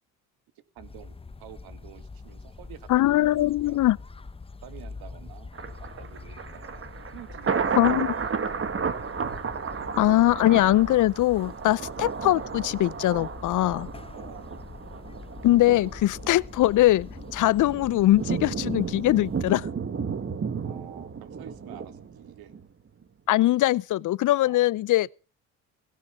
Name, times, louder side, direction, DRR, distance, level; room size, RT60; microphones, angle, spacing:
voice 1, 0.6-3.9 4.6-7.8 9.7-10.1 11.6-11.9 14.1-14.6 17.6-17.7 20.6-22.6 24.4-24.7, right 11 dB, 70° right, 2.1 m, -49 dB
sound 1, 0.8-19.5, left 3 dB, 15° left, 0.9 m, -44 dB
voice 2, 2.9-4.0 7.8-8.1 10.0-13.9 15.4-19.7 23.3-25.1, left 15 dB, 55° left, 0.6 m, -22 dB
Thunder, 5.5-22.7 23.0-23.1, right 6 dB, 35° right, 1.9 m, -33 dB
17.0 x 16.5 x 3.6 m
supercardioid pair, 65°, 38 cm